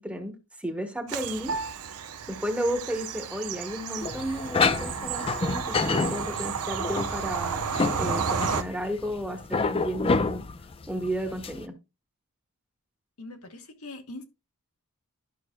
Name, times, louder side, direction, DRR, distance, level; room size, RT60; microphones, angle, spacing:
voice 1, 0.0-1.5 2.3-7.7 8.0-10.4 10.9-11.7, equal, 5° right, 1.0 m, -33 dB
Bird vocalization bird call bird song / Train, 1.1-8.6, right 6 dB, 85° right, 0.8 m, -32 dB
Piano, 1.5-11.1, right 3 dB, 65° right, 1.2 m, -45 dB
sound 1, 4.0-11.6, left 4 dB, 25° left, 0.4 m, -29 dB
voice 2, 13.2-14.3, left 2 dB, 70° left, 1.3 m, -42 dB
11.0 x 6.2 x 2.2 m
head